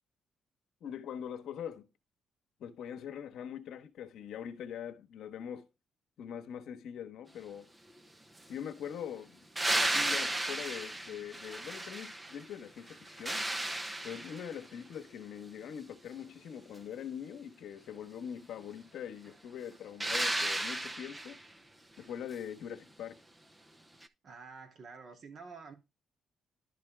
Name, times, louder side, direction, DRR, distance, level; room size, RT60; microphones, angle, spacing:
voice 1, 0.8-1.9 2.6-5.7 6.2-7.7 8.5-13.4 14.0-21.4 22.0-23.2, left 8 dB, 75° left, 1.1 m, -43 dB
sound 1, 9.6-12.5 12.9-14.6 20.0-21.4 24.0-24.1, right 1 dB, 15° right, 0.9 m, -34 dB
voice 2, 24.2-25.7, right 4 dB, 55° right, 2.4 m, -49 dB
11.5 x 4.5 x 3.4 m
cardioid pair, 90°, 0 cm